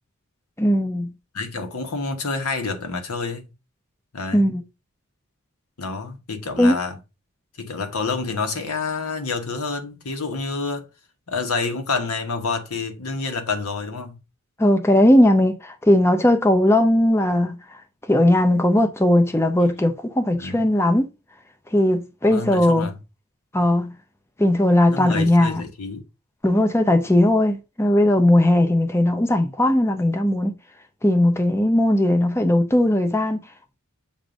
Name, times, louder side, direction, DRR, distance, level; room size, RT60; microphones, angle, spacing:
voice 1, 0.6-1.1 4.3-4.6 6.6-6.7 14.6-17.6 18.1-21.1 21.7-22.9 23.5-23.9 24.4-25.6 26.4-30.5 31.0-33.4, left 1 dB, 10° left, 0.5 m, -18 dB
voice 2, 1.3-3.5 4.1-4.5 5.8-7.0 7.6-10.9 11.3-14.2 20.3-20.7 22.3-23.0 24.9-26.0, left 4 dB, 90° left, 1.2 m, -28 dB
7.4 x 2.6 x 5.0 m
head